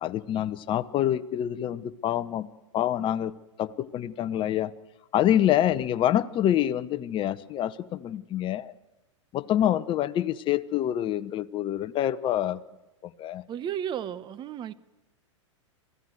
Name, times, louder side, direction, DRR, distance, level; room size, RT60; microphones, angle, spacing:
voice 1, 0.0-2.5 2.7-3.3 3.6-4.7 5.1-8.7 9.3-12.6 13.0-13.4, left 11 dB, 30° left, 14 dB, 0.9 m, -26 dB
voice 2, 13.5-14.7, right 9 dB, 30° right, 15 dB, 1.0 m, -34 dB
27.0 x 15.0 x 7.9 m, 1.1 s
hypercardioid pair, 110°, 16 cm